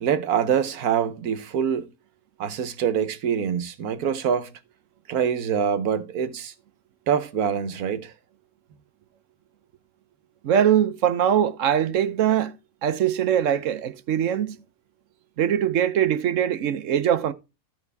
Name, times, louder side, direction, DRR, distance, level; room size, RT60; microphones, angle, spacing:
voice 1, 0.0-1.9 2.4-4.5 5.1-6.5 7.1-8.1, right 8 dB, 90° right, 1.5 m, -25 dB
voice 2, 10.4-12.5 12.8-14.6 15.4-17.3, right 9 dB, 65° right, 1.1 m, -22 dB
13.5 x 5.8 x 3.4 m
omnidirectional pair, 1.5 m